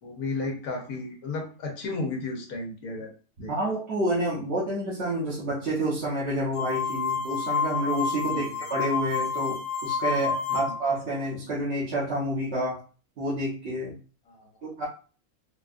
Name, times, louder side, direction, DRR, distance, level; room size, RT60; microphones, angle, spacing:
voice 1, 0.0-3.1 3.4-3.5 8.3-8.5 10.5-10.7 14.3-14.7, left 3 dB, 80° left, 1 dB, 1.4 m, -34 dB
voice 2, 3.4-12.8 13.2-13.9 14.6-14.8, right 1 dB, 50° right, -9 dB, 1.3 m, -29 dB
sound 1, 6.6-10.9, left 6 dB, 60° left, 1.4 m, -29 dB
4.5 x 2.3 x 2.5 m, 0.38 s
omnidirectional pair, 1.5 m